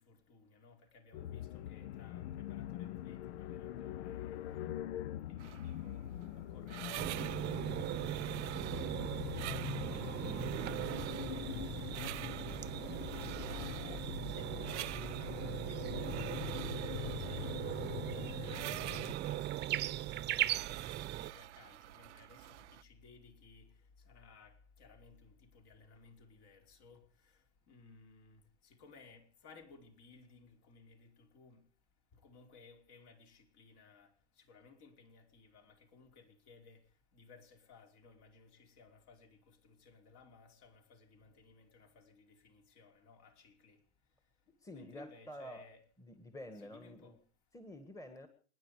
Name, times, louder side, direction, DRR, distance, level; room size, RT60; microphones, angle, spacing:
voice 1, 0.0-45.8 46.5-47.5, left 4 dB, 50° left, 5.0 m, -61 dB
sound 1, 1.1-19.1, left 12 dB, 70° left, 0.8 m, -43 dB
sound 2, 5.4-22.8, right 16 dB, 80° right, 0.7 m, -49 dB
sound 3, 7.0-21.3, right 13 dB, 30° right, 0.9 m, -39 dB
voice 2, 44.6-45.6 46.0-47.2 47.5-48.3, equal, 10° left, 1.9 m, -49 dB
27.5 x 10.5 x 5.0 m
hypercardioid pair, 120°, 34 cm